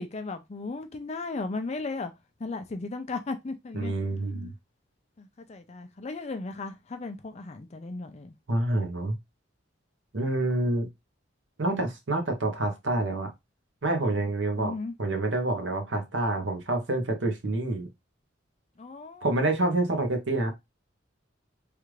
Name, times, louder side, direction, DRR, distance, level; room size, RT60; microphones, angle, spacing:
voice 1, 0.0-2.1 2.4-3.9 5.2-8.3 14.6-14.9 18.8-19.3, left 3 dB, 35° left, 0.4 m, -36 dB
voice 2, 3.7-4.5 8.5-9.1 10.1-10.9 11.6-13.3 13.8-14.7 15.0-17.9 19.2-20.5, right 2 dB, 70° right, 0.9 m, -27 dB
3.3 x 2.5 x 3.1 m
head